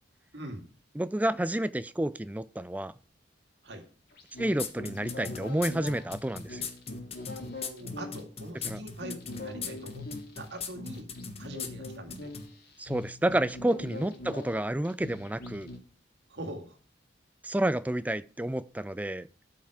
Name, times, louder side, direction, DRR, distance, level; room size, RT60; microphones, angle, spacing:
voice 1, 0.3-0.7 3.6-3.8 7.6-10.1 10.4-11.1 11.4-12.3 16.3-16.8, right 1 dB, 65° right, 2.2 m, -42 dB
voice 2, 1.0-2.9 4.4-6.7 8.6-8.8 12.8-15.7 17.4-19.3, right 1 dB, 10° right, 0.4 m, -30 dB
sound 1, 4.1-15.8, left 2 dB, 55° left, 2.4 m, -43 dB
sound 2, 4.6-12.5, left 6 dB, 35° left, 1.1 m, -38 dB
13.0 x 5.8 x 4.9 m
head